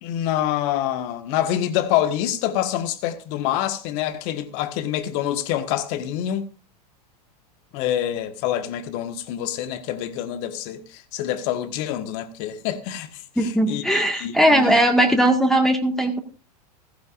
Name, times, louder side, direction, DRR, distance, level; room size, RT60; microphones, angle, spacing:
voice 1, 0.0-6.5 7.7-14.8, left 11 dB, 50° left, 1.5 m, -26 dB
voice 2, 13.4-16.2, right 1 dB, ahead, 1.8 m, -19 dB
15.0 x 15.0 x 2.5 m
hypercardioid pair, 100°, 21 cm